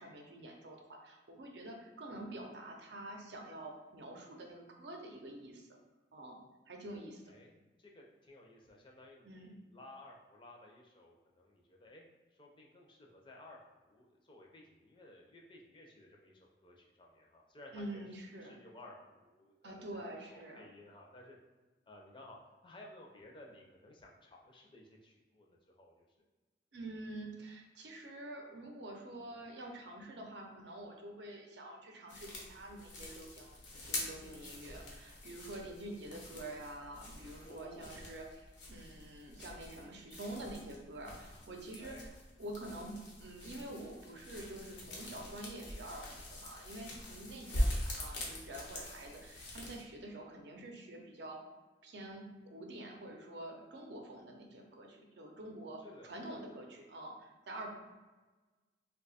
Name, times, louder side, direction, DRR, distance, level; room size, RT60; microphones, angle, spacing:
voice 1, 0.0-5.8 6.1-6.4 6.7-7.3 9.2-9.6 17.7-18.6 19.6-20.6 26.7-33.6 33.8-42.0 42.4-51.4 51.8-57.7, right 1 dB, 70° right, 1 dB, 0.6 m, -47 dB
voice 2, 7.3-12.0 12.3-18.0 18.4-20.0 20.3-21.4 21.9-22.4 22.6-26.1 37.4-38.1 41.8-42.1 55.8-56.1, left 1 dB, 25° left, -1 dB, 0.5 m, -56 dB
sound 1, 32.1-49.8, left 1 dB, 90° left, 0.9 m, -43 dB
2.7 x 2.3 x 4.1 m, 1.3 s
head